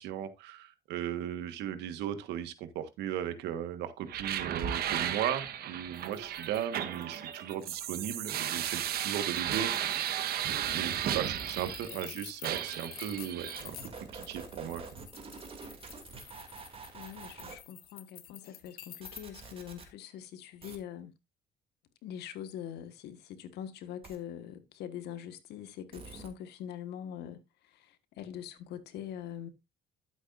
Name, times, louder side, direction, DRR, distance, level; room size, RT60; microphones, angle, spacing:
voice 1, 0.0-9.9 10.7-15.0, right 10 dB, 85° right, 1.5 m, -37 dB
sound 1, 4.1-12.1 12.4-13.6, right 10 dB, 65° right, 1.4 m, -34 dB
sound 2, 5.9-19.2, left 11 dB, 65° left, 1.6 m, -50 dB
voice 2, 10.7-11.2 16.9-21.1 22.0-29.5, left 10 dB, 80° left, 1.6 m, -43 dB
sound 3, 13.5-17.6 19.0-19.9 20.6-20.8 24.0-24.2 25.9-26.3, right 4 dB, 35° right, 2.7 m, -47 dB
12.0 x 8.2 x 2.6 m
cardioid pair, 110°, 17 cm